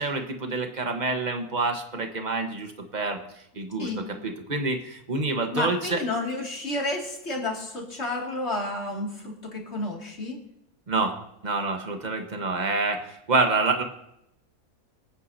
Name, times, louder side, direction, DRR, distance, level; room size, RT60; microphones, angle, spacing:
voice 1, 0.0-3.2 3.5-3.9 4.2-6.0 10.9-11.2 11.4-13.8, right 3 dB, 30° right, 5 dB, 1.3 m, -27 dB
voice 2, 5.5-10.4, left 2 dB, 45° left, -1 dB, 2.6 m, -31 dB
24.0 x 9.2 x 2.8 m, 0.81 s
omnidirectional pair, 1.6 m